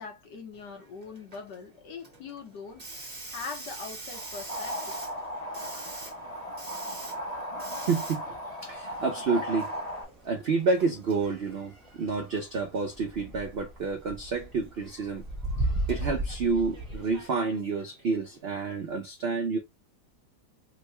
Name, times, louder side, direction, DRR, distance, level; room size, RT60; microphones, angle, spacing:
voice 1, 0.0-2.8 3.3-5.1, left 5 dB, 85° left, 1.6 m, -42 dB
Hiss, 0.5-18.9, right 2 dB, 30° right, 0.9 m, -48 dB
sound 1, 2.7-17.2, right 1 dB, ahead, 0.7 m, -39 dB
sound 2, 4.1-10.0, equal, 30° left, 0.8 m, -36 dB
voice 2, 5.6-6.0 7.7-8.4 8.6-9.7 10.2-15.2 15.6-19.6, right 4 dB, 75° right, 0.5 m, -29 dB
3.7 x 2.1 x 3.1 m
omnidirectional pair, 1.8 m